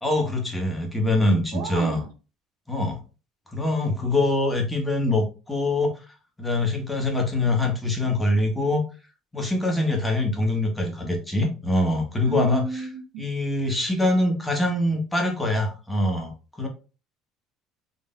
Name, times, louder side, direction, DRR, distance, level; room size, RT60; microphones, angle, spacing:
voice 1, 0.0-2.0 2.7-3.0 3.5-6.0 6.4-8.8 9.3-12.8 13.2-16.3 16.6-16.7, left 2 dB, 10° left, 1.5 m, -24 dB
voice 2, 1.5-2.1 12.2-13.3, right 6 dB, 75° right, 0.6 m, -33 dB
3.9 x 3.3 x 2.6 m
supercardioid pair, 85°, 0 cm